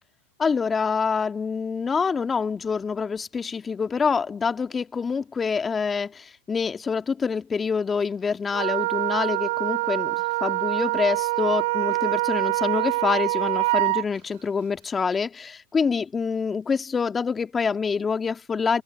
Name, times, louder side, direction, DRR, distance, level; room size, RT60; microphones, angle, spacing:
voice 1, 0.4-18.8, left 5 dB, 20° left, 1.7 m, -26 dB
Wind instrument woodwind instrument, 8.5-14.0, right 22 dB, 60° right, 3.5 m, -25 dB
open air
hypercardioid pair, 105°, 0 cm